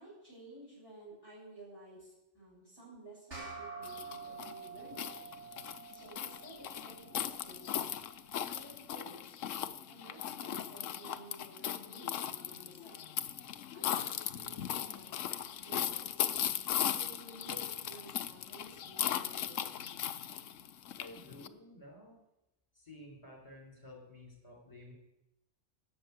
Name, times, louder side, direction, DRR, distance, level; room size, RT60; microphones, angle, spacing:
voice 1, 0.0-5.2 5.9-7.9 8.4-9.4 9.9-13.0 13.7-15.4 15.6-16.2 16.8-19.7, right 2 dB, 15° right, -6 dB, 7.1 m, -54 dB
sound 1, 3.3-8.1, right 5 dB, 60° right, 4.1 m, -48 dB
sound 2, 3.8-21.5, left 10 dB, 70° left, 1.0 m, -38 dB
voice 2, 21.0-22.2 22.7-24.9, left 1 dB, 25° left, 0 dB, 4.4 m, -52 dB
12.5 x 8.1 x 8.5 m, 0.91 s
omnidirectional pair, 1.4 m